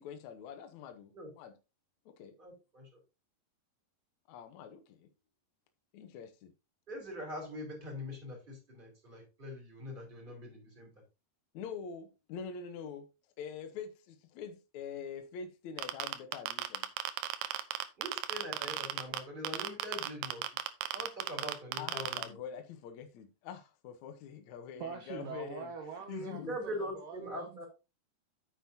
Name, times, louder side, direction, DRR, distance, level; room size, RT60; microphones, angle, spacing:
voice 1, 0.0-1.5 2.0-2.3 4.3-5.1 5.9-6.5 11.5-13.1 13.4-16.9 21.8-25.7 26.1-26.6, left 7 dB, 80° left, 1.6 m, -45 dB
voice 2, 2.4-3.0 6.9-10.9 18.0-20.4 20.9-22.4 26.2-27.6, equal, 10° right, 4.0 m, -43 dB
sound 1, 15.8-19.2 19.5-22.2, right 12 dB, 80° right, 2.9 m, -36 dB
voice 3, 24.8-27.6, right 6 dB, 65° right, 2.3 m, -43 dB
9.3 x 8.0 x 2.8 m
omnidirectional pair, 4.8 m